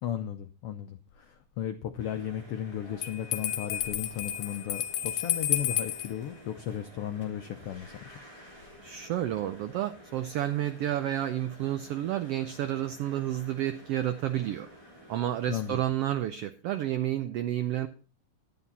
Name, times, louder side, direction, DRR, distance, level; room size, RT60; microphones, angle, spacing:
voice 1, 0.0-8.2 15.5-15.8, left 10 dB, 80° left, 7 dB, 1.3 m, -35 dB
sound 1, 2.0-15.7, equal, 10° right, 3.1 m, -51 dB
Bell, 3.0-6.1, left 11 dB, 65° left, 2.3 m, -31 dB
voice 2, 8.8-14.7 15.1-17.9, right 12 dB, 90° right, 10 dB, 1.3 m, -30 dB
11.5 x 9.8 x 4.1 m, 0.38 s
omnidirectional pair, 3.5 m